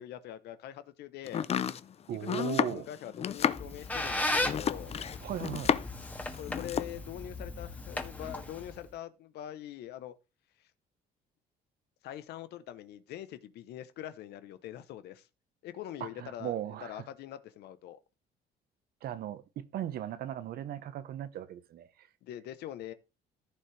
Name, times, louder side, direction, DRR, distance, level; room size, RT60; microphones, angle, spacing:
voice 1, 0.0-1.5 2.1-4.9 6.4-10.1 12.0-15.3 15.6-16.5 16.8-18.0 22.2-22.9, left 12 dB, 75° left, 0.8 m, -43 dB
Domestic sounds home sounds, 1.3-6.1 6.3-7.0, left 8 dB, 40° left, 0.6 m, -31 dB
voice 2, 2.1-2.9 5.2-5.7 16.0-17.0 19.0-22.1, right 11 dB, 65° right, 1.0 m, -37 dB
Squeak, 3.4-8.9, left 2 dB, 10° left, 1.7 m, -36 dB
14.5 x 5.8 x 3.3 m
cardioid pair, 110°, 17 cm